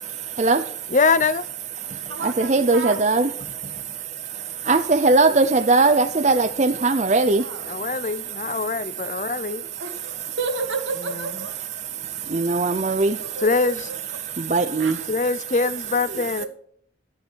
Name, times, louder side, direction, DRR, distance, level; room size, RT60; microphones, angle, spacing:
voice 1, 0.2-0.9 1.8-8.6 9.2-9.4 11.8-13.4 14.2-15.1, right 3 dB, 40° right, 0.6 m, -21 dB
voice 2, 0.9-1.5 7.7-9.6 13.4-13.9 15.1-16.4, left 4 dB, 40° left, 0.6 m, -23 dB
voice 3, 2.1-3.0 7.4-7.8 9.8-11.6 13.1-13.9 14.8-14.9 15.9-16.5, right 3 dB, 90° right, 2.3 m, -32 dB
10.5 x 8.6 x 4.6 m
head